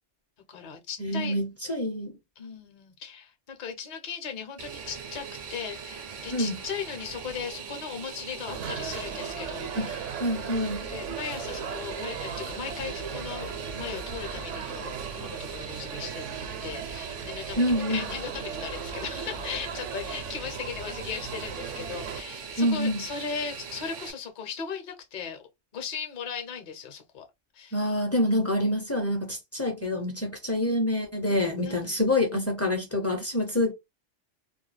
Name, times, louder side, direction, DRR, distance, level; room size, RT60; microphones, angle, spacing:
voice 1, 0.5-1.3 2.4-10.1 10.7-16.3 16.6-25.4 25.7-27.2 27.5-27.8 31.6-32.0, left 6 dB, 50° left, 0.7 m, -38 dB
voice 2, 1.0-2.2 6.3-6.6 9.8-10.9 17.6-18.0 22.6-23.1 27.7-33.7, left 1 dB, 20° left, 0.4 m, -27 dB
Fixed-wing aircraft airplane, 4.6-24.1, right 6 dB, 55° right, 0.5 m, -41 dB
sound 1, 8.5-22.2, right 6 dB, 85° right, 1.0 m, -37 dB
2.3 x 2.2 x 3.1 m
omnidirectional pair, 1.2 m